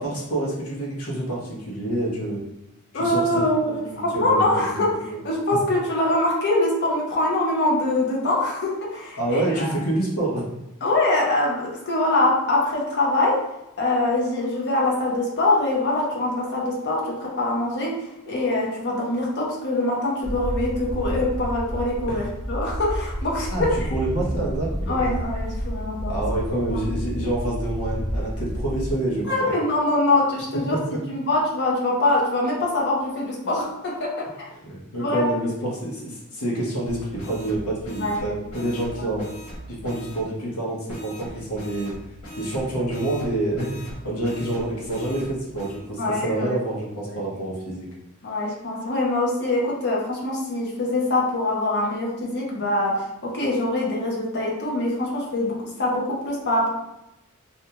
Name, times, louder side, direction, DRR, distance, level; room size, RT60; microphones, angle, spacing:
voice 1, 0.0-2.4 2.9-3.4 3.7-5.2 5.5-5.6 9.2-10.5 23.5-23.6 23.9-25.1 26.1-29.5 30.7-30.8 34.6-39.3 39.7-41.9 42.3-47.9, right 1 dB, 90° left, -3 dB, 0.9 m, -27 dB
voice 2, 2.9-9.7 10.8-13.5 13.8-23.7 24.9-26.2 26.7-26.8 29.3-30.8 31.1-34.5 35.0-35.3 38.0-38.4 39.0-39.1 46.0-46.6 47.1-47.2 48.2-56.7, left 2 dB, 50° left, -3 dB, 0.7 m, -24 dB
sound 1, 20.2-28.9, equal, 10° right, 0.6 m, -30 dB
sound 2, 36.8-40.2 40.9-45.8, equal, 65° left, 1.0 m, -40 dB
2.6 x 2.3 x 2.7 m, 0.91 s
head